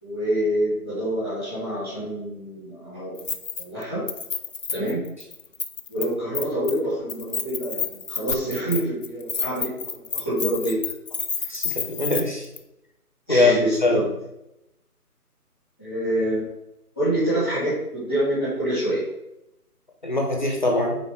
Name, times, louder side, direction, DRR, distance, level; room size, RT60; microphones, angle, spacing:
voice 1, 0.0-3.2 3.6-4.0 4.7-5.0 5.9-10.8 13.3-14.1 15.8-16.5 17.0-19.0, right 1 dB, 5° right, -13 dB, 1.9 m, -26 dB
Keys jangling, 3.2-3.8 4.1-6.0 6.3-6.8 7.1-12.2 12.6-12.7, left 5 dB, 55° left, 0.6 m, -29 dB
voice 2, 11.5-12.5 13.3-14.0 20.0-21.0, left 2 dB, 30° left, 1 dB, 0.9 m, -22 dB
6.0 x 4.1 x 4.7 m, 0.87 s
figure-of-eight pair, 180°, 46 cm